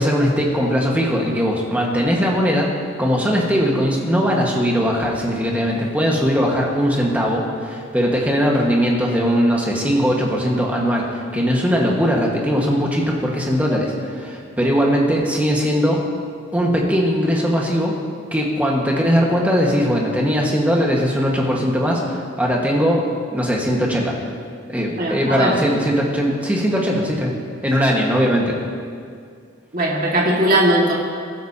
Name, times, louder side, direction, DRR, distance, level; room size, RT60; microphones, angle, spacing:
voice 1, 0.0-2.7 3.0-16.0 16.5-17.9 18.3-23.1 23.3-24.2 24.7-27.3 27.6-28.6, equal, 5° right, -2 dB, 1.6 m, -19 dB
voice 2, 25.0-25.5 29.7-30.9, right 1 dB, 40° right, -3 dB, 2.1 m, -18 dB
22.0 x 11.5 x 2.9 m, 2.2 s
head